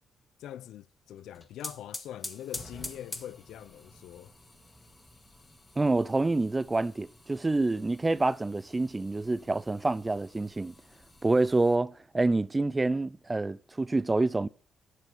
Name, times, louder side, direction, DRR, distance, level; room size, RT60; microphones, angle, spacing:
voice 1, 0.4-4.3, left 11 dB, 80° left, 0.5 m, -43 dB
sound 1, 1.2-11.8, left 2 dB, 15° left, 2.0 m, -47 dB
voice 2, 5.8-10.7 11.2-14.5, right 2 dB, 20° right, 0.5 m, -27 dB
11.0 x 7.3 x 6.7 m
cardioid pair, 90°, 0 cm